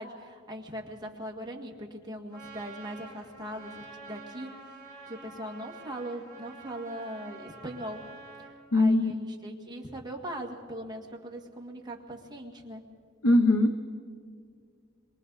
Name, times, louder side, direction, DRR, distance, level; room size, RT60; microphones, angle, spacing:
voice 1, 0.0-4.6 5.1-8.1 8.7-12.8, equal, 20° right, 0 dB, 1.9 m, -40 dB
Trumpet, 2.3-8.5, right 3 dB, 15° left, 4.4 m, -48 dB
voice 2, 8.7-9.1 13.2-13.8, left 2 dB, 80° left, 6 dB, 1.1 m, -21 dB
29.0 x 23.0 x 4.1 m, 2.2 s
head